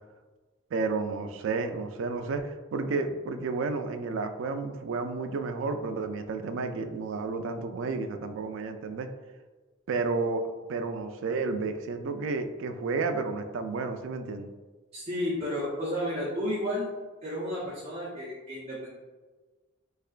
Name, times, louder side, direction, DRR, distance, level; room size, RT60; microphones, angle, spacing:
voice 1, 0.7-9.1 9.9-10.4 10.7-14.5, right 4 dB, 65° right, 7 dB, 0.3 m, -31 dB
voice 2, 14.9-16.9 17.2-18.9, equal, 30° right, -10 dB, 0.8 m, -32 dB
3.6 x 3.3 x 2.4 m, 1.3 s
head